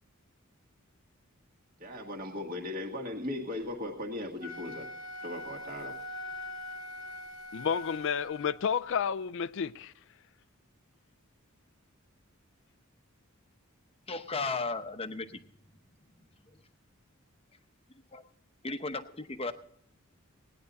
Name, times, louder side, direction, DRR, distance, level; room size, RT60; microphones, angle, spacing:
voice 1, 1.8-4.9 5.2-6.0, left 1 dB, 45° right, 1.8 m, -38 dB
Wind instrument woodwind instrument, 4.4-8.7, left 1 dB, 25° right, 2.1 m, -42 dB
voice 2, 7.5-9.9, left 7 dB, 60° left, 0.4 m, -31 dB
voice 3, 14.1-15.4 18.1-18.2 18.6-19.5, left 3 dB, 25° left, 0.8 m, -35 dB
18.5 x 10.0 x 4.0 m
head